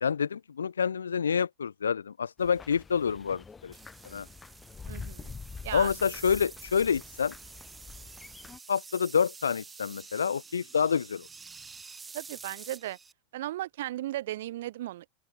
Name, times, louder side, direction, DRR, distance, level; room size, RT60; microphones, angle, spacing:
voice 1, 0.0-3.7 4.0-4.3 5.7-7.3 8.7-11.3, left 6 dB, 80° left, 0.4 m, -28 dB
sound 1, 2.4-8.6, left 5 dB, 20° left, 1.3 m, -46 dB
sound 2, 3.7-13.1, right 5 dB, 15° right, 1.4 m, -48 dB
voice 2, 4.9-5.4 5.6-5.9 12.1-13.0 13.3-15.1, right 14 dB, 65° right, 0.9 m, -36 dB
open air
figure-of-eight pair, 85°, 0 cm